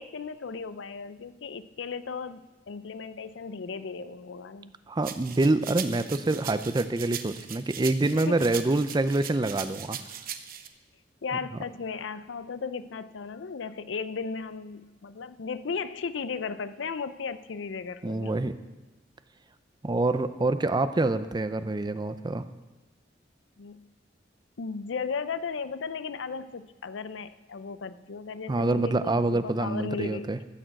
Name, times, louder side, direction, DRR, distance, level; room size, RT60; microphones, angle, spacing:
voice 1, 0.0-4.7 8.1-8.5 11.2-18.3 23.6-23.8 24.6-30.4, left 5 dB, 85° left, 14 dB, 0.5 m, -36 dB
voice 2, 4.9-10.0 18.0-18.5 19.8-22.4 28.5-30.4, right 2 dB, 25° right, 12 dB, 0.5 m, -26 dB
sound 1, 5.0-10.7, right 9 dB, 50° right, 0.8 m, -39 dB
14.0 x 6.5 x 7.7 m, 1.2 s
head